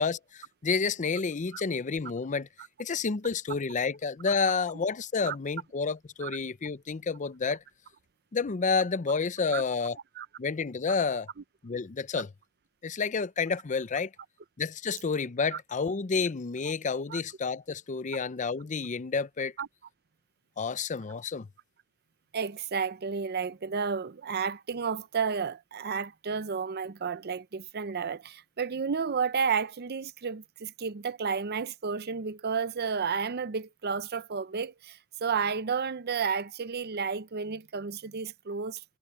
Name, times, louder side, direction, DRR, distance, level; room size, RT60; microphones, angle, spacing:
voice 1, 0.0-2.5 2.8-7.6 8.3-10.0 10.4-11.3 11.6-12.3 12.8-14.1 14.6-19.5 20.6-21.5, left 5 dB, 35° left, 0.5 m, -30 dB
voice 2, 22.3-38.8, right 5 dB, 50° right, 0.6 m, -32 dB
head